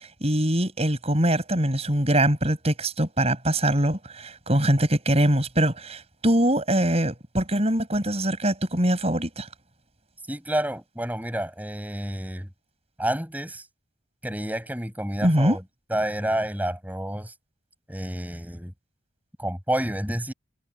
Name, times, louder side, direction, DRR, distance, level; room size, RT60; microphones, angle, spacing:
voice 1, 0.0-9.5 15.2-15.6, right 1 dB, 30° right, 7.9 m, -23 dB
voice 2, 10.3-12.5 13.0-13.7 14.2-15.6 15.9-17.3 17.9-18.7 19.4-20.3, right 1 dB, 10° right, 7.6 m, -29 dB
head